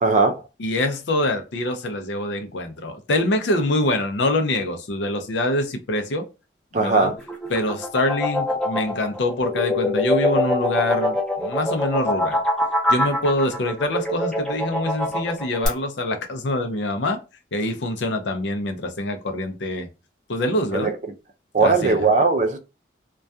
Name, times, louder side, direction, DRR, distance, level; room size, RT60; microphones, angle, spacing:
voice 1, 0.0-0.4 6.7-7.1 20.7-20.9 21.5-22.6, right 4 dB, 40° right, 0.4 m, -18 dB
voice 2, 0.6-6.3 6.7-7.1 7.5-12.4 12.9-17.2 17.5-19.9 20.3-20.9 21.6-22.1, left 1 dB, 75° left, 0.5 m, -25 dB
sound 1, 7.2-15.7, left 1 dB, 5° left, 0.6 m, -24 dB
2.2 x 2.2 x 2.6 m
head